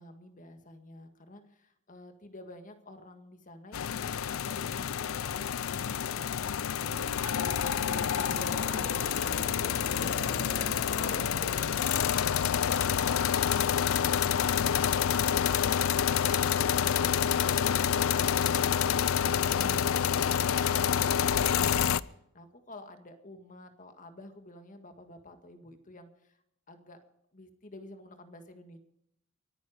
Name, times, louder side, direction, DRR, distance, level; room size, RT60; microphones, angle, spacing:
voice 1, 0.0-7.1 8.2-8.8 19.2-26.4 26.7-27.0 27.3-28.8, left 1 dB, 40° left, 7 dB, 1.8 m, -50 dB
sound 1, 3.7-22.0, left 8 dB, 80° left, 0.5 m, -28 dB
voice 2, 6.8-9.6 19.4-19.9, right 2 dB, 75° right, 9 dB, 1.6 m, -46 dB
sound 2, 7.4-11.9, left 2 dB, 60° left, 1.7 m, -39 dB
23.5 x 9.9 x 5.0 m, 0.77 s
head